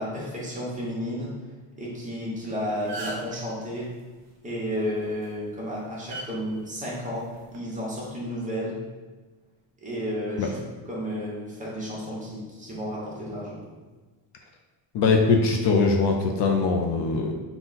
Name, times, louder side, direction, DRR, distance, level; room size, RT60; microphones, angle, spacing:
voice 1, 0.0-1.3 1.8-3.9 4.4-8.8 9.8-10.6 10.9-13.6, equal, 15° right, -6 dB, 1.0 m, -32 dB
sound 1, 2.3-2.5 2.7-3.4 5.0-5.2 6.1-6.3 7.3-7.6, right 2 dB, 60° right, 1.0 m, -36 dB
voice 2, 14.9-17.3, left 4 dB, 60° left, 2 dB, 0.5 m, -21 dB
3.8 x 2.3 x 3.9 m, 1.3 s
cardioid pair, 150°, 48 cm